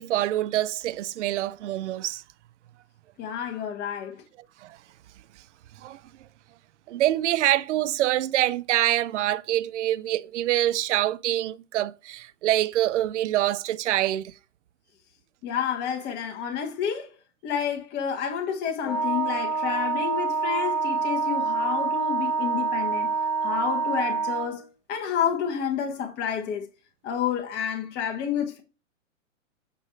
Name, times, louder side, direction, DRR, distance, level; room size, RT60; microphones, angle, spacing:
voice 1, 0.0-2.2 4.6-4.8 5.8-6.0 6.9-14.3, right 14 dB, 65° right, 0.5 m, -25 dB
voice 2, 3.2-4.2 15.4-17.1 17.4-23.1 23.4-26.7 27.0-28.6, left 8 dB, 25° left, 1.2 m, -29 dB
Wind instrument woodwind instrument, 18.8-24.6, right 5 dB, 45° left, 3.5 m, -26 dB
8.3 x 5.4 x 3.1 m
hypercardioid pair, 125°, 39 cm